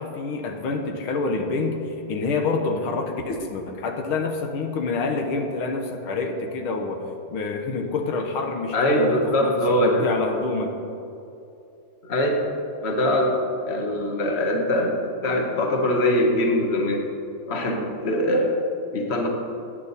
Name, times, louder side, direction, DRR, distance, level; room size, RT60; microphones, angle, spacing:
voice 1, 0.0-7.0 7.3-10.7, left 3 dB, 80° left, 4 dB, 2.0 m, -27 dB
voice 2, 8.7-10.0 12.0-12.4 12.8-14.9 15.2-17.1 17.5-18.6 18.9-19.3, left 1 dB, 35° left, 1 dB, 1.6 m, -22 dB
18.0 x 9.1 x 4.1 m, 2.8 s
omnidirectional pair, 2.3 m